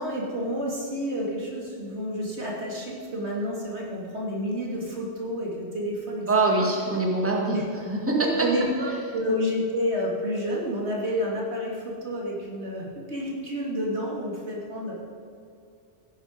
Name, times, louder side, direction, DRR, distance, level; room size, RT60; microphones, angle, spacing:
voice 1, 0.0-6.6 7.5-7.6 8.4-14.9, equal, 70° right, -3 dB, 2.9 m, -29 dB
voice 2, 6.3-7.6 7.9-8.3, right 2 dB, 10° right, -1 dB, 1.9 m, -23 dB
16.5 x 10.5 x 5.2 m, 2.5 s
omnidirectional pair, 1.2 m